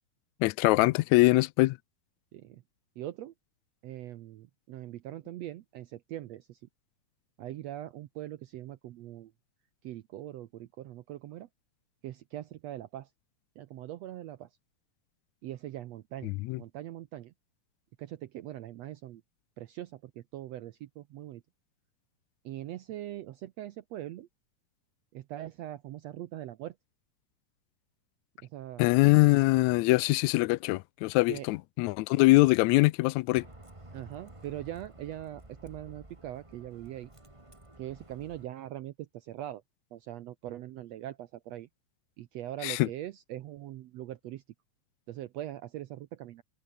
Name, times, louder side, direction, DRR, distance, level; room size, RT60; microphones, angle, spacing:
voice 1, 0.4-1.8 16.2-16.6 28.8-33.4 42.6-42.9, left 21 dB, 90° left, 1.6 m, -23 dB
voice 2, 2.3-2.6 3.0-3.3 3.8-6.6 7.4-9.3 9.8-11.5 12.0-13.1 13.6-14.5 15.4-16.3 16.6-17.3 18.0-19.2 19.6-21.4 22.4-24.3 25.1-26.7 28.4-28.8 31.3-31.5 33.9-37.1 37.8-39.6 39.9-41.7 42.2-44.4 45.1-46.4, right 13 dB, 75° right, 1.6 m, -41 dB
Bus, 33.3-38.5, right 1 dB, 10° right, 2.5 m, -52 dB
omnidirectional pair, 3.8 m